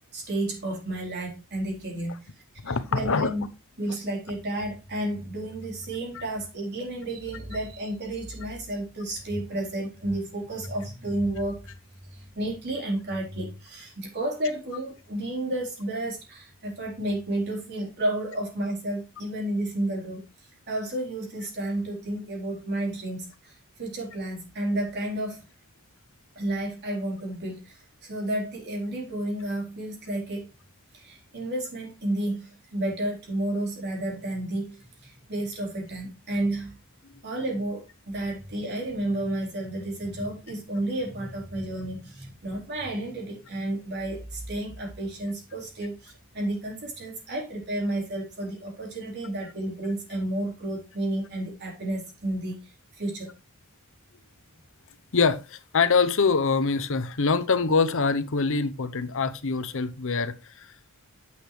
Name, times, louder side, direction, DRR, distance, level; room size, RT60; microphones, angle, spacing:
voice 1, 0.1-2.3 2.6-3.4 3.8-11.7 12.1-20.2 20.7-25.4 26.4-30.5 30.9-36.8 37.2-53.3, right 1 dB, 50° right, 4.0 m, -31 dB
voice 2, 2.6-3.3 6.1-6.2 55.1-60.7, left 4 dB, 65° left, 0.8 m, -24 dB
9.9 x 8.2 x 3.2 m
head